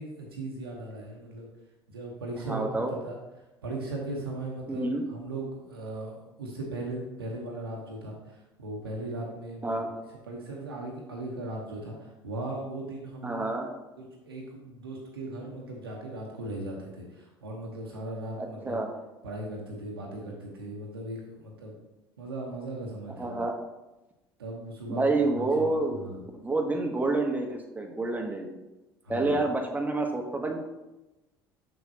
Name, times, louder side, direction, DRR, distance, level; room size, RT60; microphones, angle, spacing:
voice 1, 0.0-1.5 1.9-3.2 3.6-10.0 10.3-13.4 14.0-18.8 19.2-21.7 22.2-23.4 24.4-25.1 25.3-26.2 29.0-29.4, right 2 dB, 80° right, -2 dB, 1.0 m, -38 dB
voice 2, 2.5-2.9 4.7-5.0 9.6-9.9 13.2-13.7 18.4-18.9 23.2-23.5 24.9-26.0 26.3-28.5 29.1-30.6, right 2 dB, 15° right, 2 dB, 1.1 m, -28 dB
6.6 x 6.2 x 2.8 m, 1.0 s
figure-of-eight pair, 65°, 12 cm